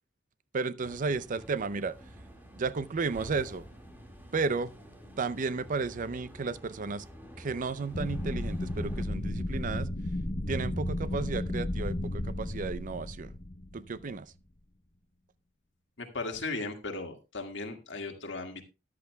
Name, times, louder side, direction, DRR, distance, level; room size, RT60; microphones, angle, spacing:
voice 1, 0.5-2.0 2.6-3.6 4.3-4.7 5.2-7.0 7.4-9.9 10.5-13.3 13.7-14.3, right 4 dB, 45° right, 0.5 m, -33 dB
sound 1, 0.8-9.0, equal, 10° right, 1.9 m, -49 dB
sound 2, 7.9-14.1, left 1 dB, 35° left, 0.9 m, -33 dB
voice 2, 16.0-18.7, left 3 dB, 70° left, 1.8 m, -37 dB
13.5 x 11.0 x 2.2 m
head